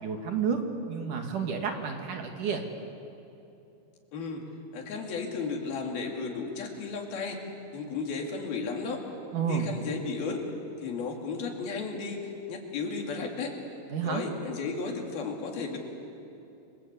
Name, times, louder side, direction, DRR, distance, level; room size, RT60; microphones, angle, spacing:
voice 1, 0.0-2.6 9.3-9.7 13.9-14.2, right 6 dB, 60° right, 4 dB, 3.2 m, -30 dB
voice 2, 4.1-4.4 4.7-7.4 7.7-9.0 9.5-10.4 10.8-13.6 14.0-15.8, left 4 dB, 70° left, 1 dB, 4.6 m, -34 dB
29.5 x 23.5 x 8.4 m, 2.8 s
omnidirectional pair, 4.5 m